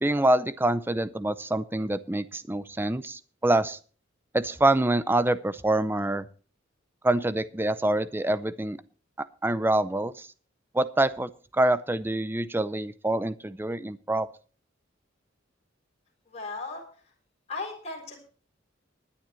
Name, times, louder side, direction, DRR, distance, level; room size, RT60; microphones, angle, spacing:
voice 1, 0.0-3.8 4.3-6.3 7.0-8.8 9.2-10.3 10.7-14.3, right 1 dB, 10° right, 15 dB, 0.5 m, -26 dB
voice 2, 16.3-16.8 17.5-18.3, left 3 dB, 35° left, 0 dB, 4.2 m, -36 dB
19.5 x 10.0 x 3.1 m, 0.39 s
head